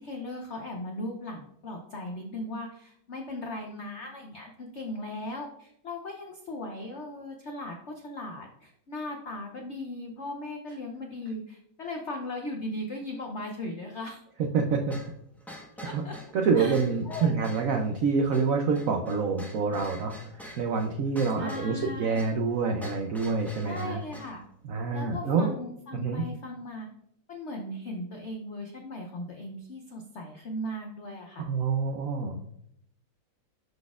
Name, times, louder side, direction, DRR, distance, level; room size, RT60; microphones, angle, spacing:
voice 1, 0.0-14.2 15.8-16.1 16.5-17.5 21.4-22.3 23.6-24.4 24.9-26.9 27.3-31.4, left 1 dB, 85° left, 1 dB, 0.6 m, -38 dB
voice 2, 14.5-15.0 15.8-16.0 16.3-20.1 20.6-24.0 24.6-25.5 26.0-26.2 31.4-32.4, right 5 dB, 90° right, 3 dB, 0.7 m, -27 dB
sound 1, 14.9-24.4, left 1 dB, ahead, 0.4 m, -46 dB
11.5 x 4.1 x 2.4 m, 0.71 s
omnidirectional pair, 2.2 m